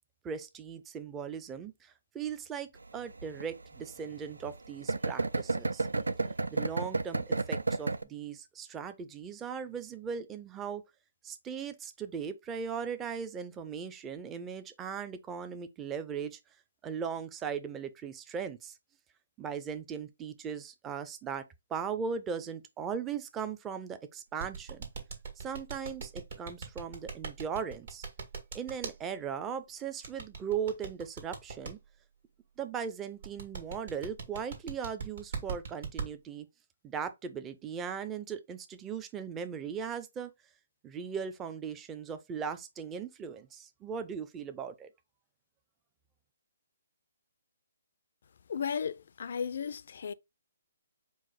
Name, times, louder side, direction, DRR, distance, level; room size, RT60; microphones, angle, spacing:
voice 1, 0.2-5.9 6.5-10.8 11.2-16.4 16.8-18.7 19.4-21.4 21.7-24.9 25.4-28.1 28.5-31.8 32.6-36.5 36.8-40.3 40.8-44.9, right 7 dB, 15° right, 0.4 m, -38 dB
sound 1, 2.8-8.0, right 3 dB, 90° right, 0.3 m, -32 dB
sound 2, 24.4-28.9 30.0-31.7 33.2-36.1, right 5 dB, 65° right, 1.6 m, -39 dB
voice 2, 48.5-50.1, left 7 dB, 60° left, 0.3 m, -35 dB
4.7 x 2.0 x 4.1 m
hypercardioid pair, 145°, 0 cm